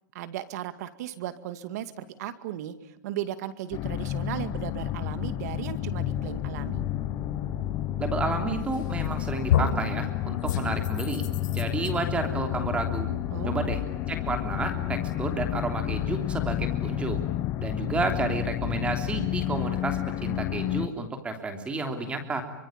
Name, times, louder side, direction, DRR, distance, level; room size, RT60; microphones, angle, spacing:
voice 1, 0.1-2.8 3.0-6.8 13.3-13.8, right 12 dB, 60° right, 11 dB, 2.3 m, -36 dB
sound 1, 3.7-20.9, left 14 dB, 30° left, 1.0 m, -30 dB
sound 2, 5.5-16.9, left 5 dB, 5° left, 6.9 m, -42 dB
voice 2, 8.0-11.2 11.5-13.1 13.5-13.8 14.1-17.2 17.6-22.4, right 3 dB, 10° right, 6 dB, 3.2 m, -31 dB
sound 3, 8.7-9.1 9.5-9.9 10.4-11.9, left 9 dB, 80° left, 7.3 m, -27 dB
27.0 x 24.5 x 8.9 m, 0.77 s
supercardioid pair, 160°, 10 cm